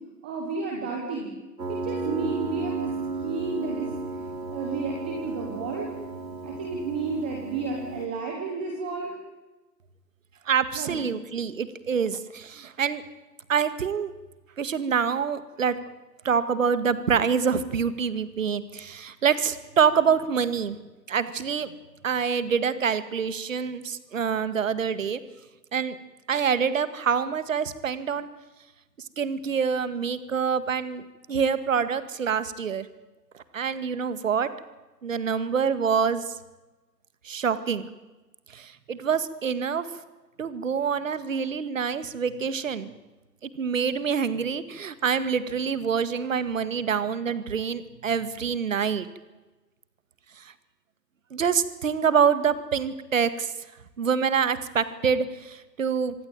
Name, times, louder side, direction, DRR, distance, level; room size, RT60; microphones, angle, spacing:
voice 1, 0.2-1.3 1.7-2.9 3.2-3.9 4.5-5.9 6.4-9.1 10.7-11.0, right 4 dB, 5° right, 1 dB, 0.9 m, -31 dB
Piano, 1.6-8.1, right 3 dB, 85° right, 4.1 m, -34 dB
voice 2, 10.5-13.0 13.5-14.1 14.6-15.8 16.2-20.8 21.1-21.7 22.0-25.2 25.7-26.0 26.3-28.3 29.2-31.0 31.3-32.9 33.5-34.5 35.0-36.3 37.2-37.9 38.5-39.9 40.4-42.9 43.4-49.1 51.3-53.5 54.0-56.1, right 6 dB, 50° right, 14 dB, 2.1 m, -26 dB
26.0 x 20.0 x 9.1 m, 1.1 s
hypercardioid pair, 155°, 49 cm